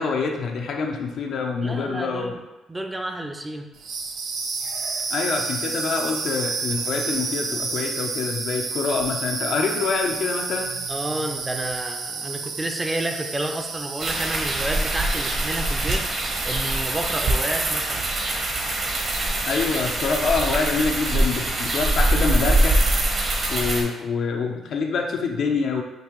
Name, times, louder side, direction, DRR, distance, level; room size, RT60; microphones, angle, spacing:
voice 1, 0.0-2.3 5.1-10.7 19.5-22.8 23.5-25.8, left 5 dB, 65° left, 2 dB, 0.6 m, -26 dB
voice 2, 1.6-2.4 2.7-3.7 10.9-16.0 16.5-18.1, right 1 dB, 20° right, 4 dB, 0.5 m, -30 dB
sound 1, 3.7-17.3, right 4 dB, 85° right, 0.5 m, -31 dB
sound 2, 14.0-23.8, right 1 dB, 50° right, 0.9 m, -23 dB
5.2 x 2.8 x 3.0 m, 1.0 s
cardioid pair, 90°, 0 cm